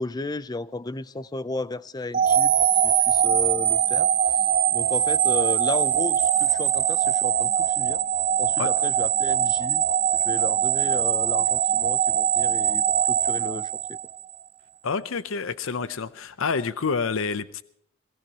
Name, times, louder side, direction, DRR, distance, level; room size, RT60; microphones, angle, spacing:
voice 1, 0.0-2.5 2.8-4.4 4.7-8.0 8.4-9.8 10.2-14.0, left 2 dB, 20° left, 0.4 m, -34 dB
sound 1, 2.1-14.3, right 9 dB, 45° right, 1.1 m, -22 dB
voice 2, 14.8-17.6, left 5 dB, 65° left, 0.6 m, -28 dB
22.0 x 17.0 x 2.9 m
head